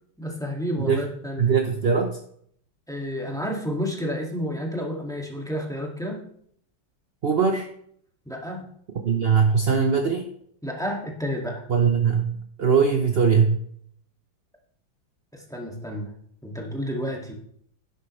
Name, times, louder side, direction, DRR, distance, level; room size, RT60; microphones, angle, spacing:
voice 1, 0.2-1.5 2.9-6.2 8.3-8.7 10.6-11.6 15.3-16.1 16.4-17.3, equal, ahead, -1 dB, 2.0 m, -30 dB
voice 2, 1.4-2.2 7.2-7.7 9.0-10.3 11.7-13.6, right 6 dB, 50° right, 4 dB, 0.7 m, -21 dB
11.5 x 10.0 x 3.3 m, 0.65 s
omnidirectional pair, 2.1 m